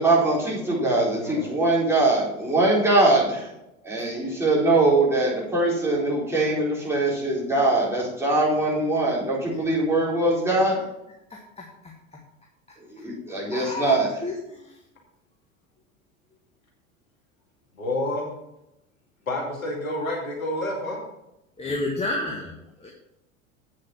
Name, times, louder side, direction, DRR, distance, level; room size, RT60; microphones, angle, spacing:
voice 1, 0.0-3.5 3.8-10.8 12.9-14.1, right 2 dB, 5° right, -6 dB, 4.1 m, -22 dB
voice 2, 0.6-1.5 17.8-18.3 19.3-21.0, left 1 dB, 75° left, -1 dB, 2.4 m, -30 dB
voice 3, 11.3-11.9 13.5-14.7 21.6-22.9, left 2 dB, 15° left, -1 dB, 1.4 m, -31 dB
8.2 x 6.4 x 5.7 m, 0.87 s
figure-of-eight pair, 75°, 41 cm